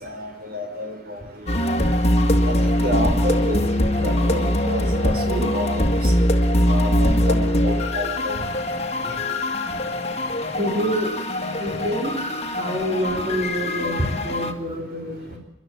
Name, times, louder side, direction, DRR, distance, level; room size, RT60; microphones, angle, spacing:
voice 1, 0.0-1.2 2.4-2.5 2.8-3.6 4.0-5.9 6.7-8.3, equal, 50° right, 5 dB, 5.1 m, -29 dB
sound 1, 1.5-14.5, left 1 dB, 35° left, 2.0 m, -22 dB
voice 2, 10.5-11.1 11.6-12.2 12.6-15.4, equal, 30° right, 0 dB, 3.6 m, -26 dB
29.0 x 12.0 x 9.2 m, 0.88 s
head